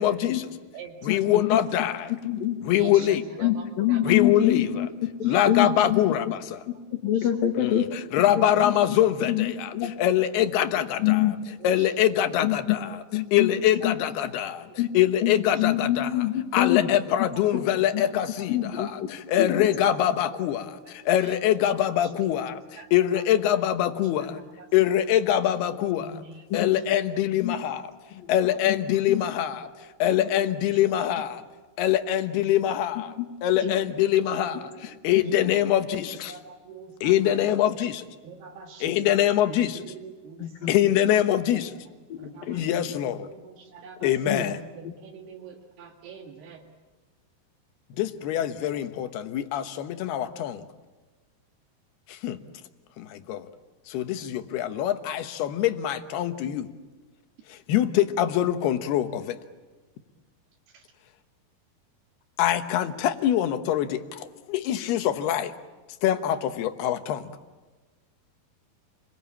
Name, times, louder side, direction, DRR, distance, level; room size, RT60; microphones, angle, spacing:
voice 1, 0.0-0.5 1.1-2.1 2.6-3.5 4.0-4.9 5.3-6.6 7.6-7.8 8.1-9.7 10.0-11.2 11.6-13.0 13.3-14.7 14.9-16.1 16.5-22.6 22.9-24.4 24.7-26.2 26.5-27.8 28.3-29.7 30.0-31.4 31.8-33.1 33.4-34.6 35.0-36.3 37.0-38.0 38.8-39.8 40.7-41.7 42.5-43.3 44.0-44.6 48.0-50.6 52.1-52.4 53.0-53.5 53.9-56.7 57.5-59.4 62.4-65.5 66.0-67.3, left 11 dB, 85° left, 9 dB, 3.2 m, -24 dB
voice 2, 0.7-1.2 2.7-4.1 5.2-5.9 6.9-7.3 8.5-8.6 10.8-10.9 11.5-12.0 14.7-14.8 15.2-15.3 15.6-15.9 16.9-17.0 17.3-17.6 18.0-18.1 18.4-18.5 18.7-19.0 19.6-19.7 20.8-20.9 21.2-21.3 22.0-22.3 22.8-23.2 23.5-23.9 24.6-24.7 25.7-26.9 27.6-27.9 28.5-28.6 29.4-29.5 30.0-30.6 31.0-31.2 33.6-33.9 34.3-37.8 38.2-39.1 39.5-41.7 42.2-44.5 44.8-46.7 60.7-60.8, right 6 dB, 85° right, 0 dB, 4.0 m, -45 dB
voice 3, 2.2-2.6 3.4-4.9 5.2-6.0 7.0-7.9 8.6-8.7 9.2-9.9 11.0-11.3 12.4-12.8 13.1-13.5 13.8-14.0 14.8-14.9 15.2-16.9 17.5-17.7 17.9-18.1 18.5-18.9 19.4-19.7 26.6-26.7 27.4-27.6 28.1-28.3 28.7-28.8 29.1-29.2 30.1-30.3 33.2-33.3 33.6-33.7 35.2-35.4 40.4-40.7 42.1-42.6 44.3-44.5 44.8-44.9, left 12 dB, 65° left, 4 dB, 3.5 m, -26 dB
29.5 x 22.5 x 8.6 m, 1.3 s
omnidirectional pair, 4.5 m